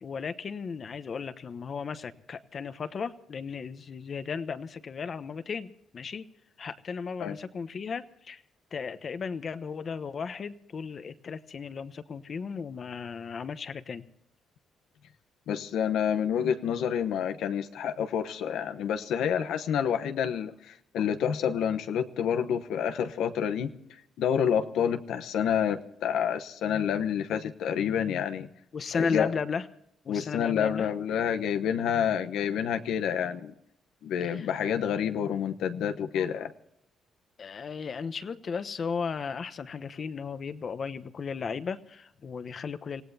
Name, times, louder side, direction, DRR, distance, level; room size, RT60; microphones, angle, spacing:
voice 1, 0.0-6.3 6.6-8.4 8.7-14.0 21.0-21.1 28.7-29.7 30.0-30.9 34.2-34.8 37.4-43.0, left 5 dB, 45° left, 12 dB, 1.0 m, -35 dB
voice 2, 15.5-23.7 24.2-28.5 28.9-29.3 30.1-33.5 34.0-36.5, left 8 dB, 85° left, 8 dB, 1.0 m, -28 dB
26.5 x 17.0 x 2.8 m, 0.75 s
cardioid pair, 90°, 0 cm